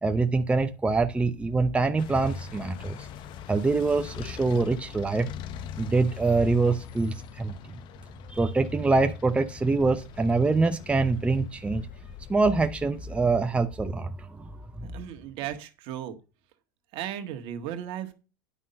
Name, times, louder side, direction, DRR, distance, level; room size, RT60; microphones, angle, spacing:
voice 1, 0.0-3.1 3.5-5.3 5.8-7.5 8.3-11.9 12.3-14.5 14.8-14.9, right 3 dB, 10° right, 0.8 m, -25 dB
sound 1, 2.0-13.3, left 10 dB, 50° left, 1.0 m, -43 dB
voice 2, 14.8-16.2 16.9-18.1, right 10 dB, 55° right, 1.6 m, -36 dB
10.0 x 5.7 x 5.3 m
hypercardioid pair, 100°, 10 cm